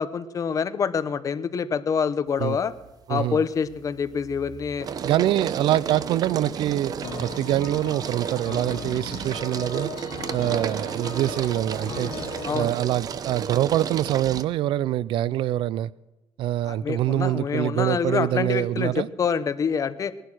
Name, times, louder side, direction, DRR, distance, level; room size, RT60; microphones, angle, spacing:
voice 1, 0.0-2.7 3.1-4.9 12.4-12.7 16.6-20.1, left 6 dB, 40° left, 13 dB, 0.9 m, -26 dB
sound 1, 2.4-2.9 3.3-14.4, right 7 dB, 45° right, 0.8 m, -33 dB
voice 2, 3.1-3.4 5.0-9.9 10.3-12.1 12.5-15.9 16.4-19.1, right 13 dB, 75° right, 21 dB, 0.5 m, -25 dB
sound 2, 7.0-12.7, left 8 dB, 75° left, 2.0 m, -39 dB
20.0 x 11.5 x 6.3 m, 1.0 s
cardioid pair, 120°, 9 cm